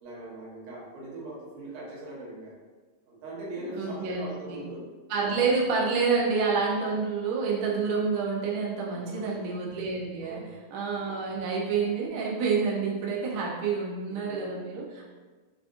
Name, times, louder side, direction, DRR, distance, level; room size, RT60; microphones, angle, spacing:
voice 1, 0.0-2.5 3.1-4.8 8.9-9.5 10.2-10.6 14.3-14.6, right 1 dB, 65° right, -6 dB, 2.5 m, -40 dB
voice 2, 3.7-4.6 5.1-15.0, right 5 dB, 85° right, -4 dB, 1.5 m, -28 dB
6.2 x 2.4 x 2.5 m, 1.3 s
omnidirectional pair, 4.1 m